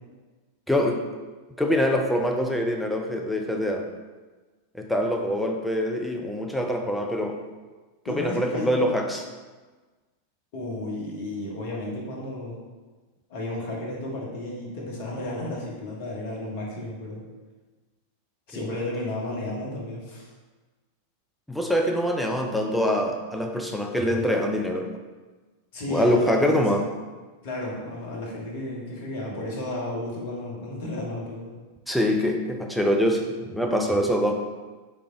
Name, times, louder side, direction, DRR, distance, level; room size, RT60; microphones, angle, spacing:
voice 1, 0.7-1.0 1.6-3.8 4.7-7.4 8.1-9.2 18.5-18.7 21.5-25.0 25.9-26.8 31.9-34.3, equal, ahead, 2 dB, 0.5 m, -24 dB
voice 2, 8.1-8.8 10.5-12.6 13.3-17.2 18.5-20.3 25.7-26.6 27.4-31.5, left 1 dB, 50° left, -3 dB, 1.1 m, -33 dB
3.4 x 3.3 x 3.7 m, 1.3 s
figure-of-eight pair, 90°, 0 cm